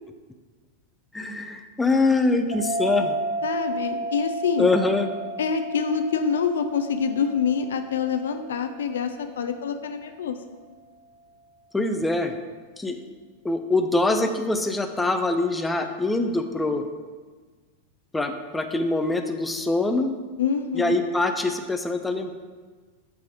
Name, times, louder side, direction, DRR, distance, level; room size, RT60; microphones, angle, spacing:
voice 1, 1.1-3.2 4.6-5.1 11.7-12.3 12.8-13.0 13.4-16.8 18.1-20.1 20.7-22.3, left 2 dB, 10° left, 6 dB, 0.5 m, -24 dB
sound 1, 2.5-9.5, right 1 dB, 80° left, 1.4 m, -33 dB
voice 2, 3.4-4.7 5.4-10.4 20.4-21.0, left 6 dB, 65° left, 7 dB, 0.4 m, -26 dB
7.4 x 3.4 x 4.9 m, 1.4 s
figure-of-eight pair, 90°, 0 cm